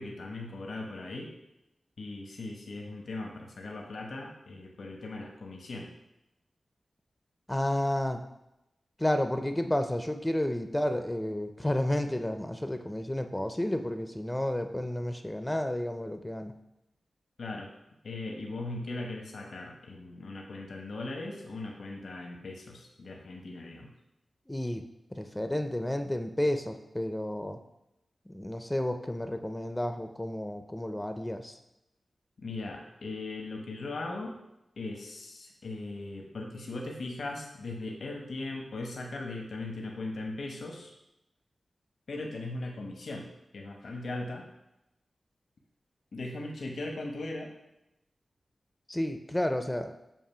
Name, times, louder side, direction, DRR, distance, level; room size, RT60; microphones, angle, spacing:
voice 1, 0.0-1.3 2.0-5.9 17.4-17.7 18.0-23.9 32.4-34.3 34.8-40.9 42.1-43.3 43.5-44.5 46.1-47.5, left 2 dB, 75° left, 1 dB, 1.0 m, -39 dB
voice 2, 7.5-8.2 9.0-16.5 24.5-24.8 25.1-27.6 28.3-31.6 48.9-49.9, left 1 dB, 15° left, 7 dB, 0.6 m, -31 dB
7.4 x 2.6 x 5.6 m, 0.88 s
cardioid pair, 40°, 0 cm